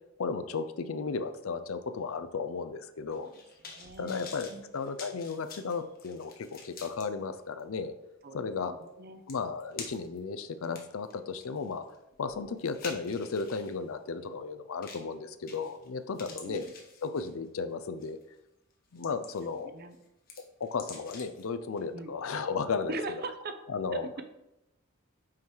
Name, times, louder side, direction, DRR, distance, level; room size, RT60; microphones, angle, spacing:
voice 1, 0.2-3.3 4.0-7.9 8.3-8.7 9.3-11.8 12.2-16.6 17.0-18.2 18.9-19.7 20.6-23.0 23.7-24.1, left 5 dB, 85° left, 11 dB, 0.5 m, -34 dB
sound 1, 3.1-7.0 7.6-7.7 8.9-9.0 9.3-10.2 10.6-13.7 14.8-15.1 15.5-15.9 16.1-17.5 18.0-18.2 18.7-19.6 19.9-21.4 21.8-21.9, left 5 dB, 45° left, 1.2 m, -47 dB
voice 2, 3.6-4.2 4.5-4.6 8.2-8.4 8.7-9.2 14.2-14.4 16.2-16.7 19.5-20.0 21.9-22.1 22.9-23.6 23.9-24.2, right 2 dB, 50° right, 8 dB, 0.6 m, -40 dB
5.7 x 4.6 x 4.7 m, 0.88 s
head